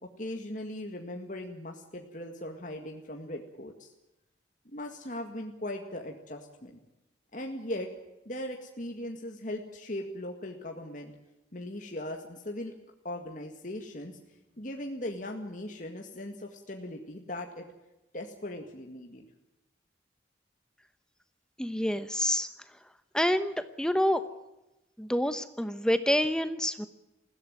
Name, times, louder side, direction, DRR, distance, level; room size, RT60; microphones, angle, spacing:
voice 1, 0.0-3.9 4.7-6.8 7.3-7.9 8.3-11.1 11.5-12.7 13.0-14.2 14.6-17.7 18.1-19.3, left 1 dB, 45° left, 2 dB, 2.0 m, -39 dB
voice 2, 21.6-22.5 23.1-24.2 25.0-26.9, equal, 5° left, 11 dB, 1.0 m, -27 dB
21.0 x 16.0 x 9.2 m, 0.98 s
head